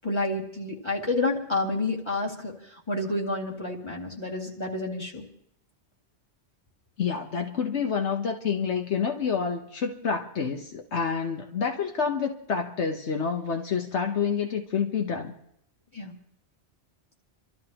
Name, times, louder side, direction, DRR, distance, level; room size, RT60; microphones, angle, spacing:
voice 1, 0.0-2.5 2.9-5.2 15.9-16.1, left 2 dB, 25° left, -1 dB, 2.2 m, -29 dB
voice 2, 7.0-15.3, left 6 dB, 75° left, 3 dB, 1.3 m, -28 dB
29.5 x 13.0 x 2.9 m, 0.73 s
omnidirectional pair, 1.2 m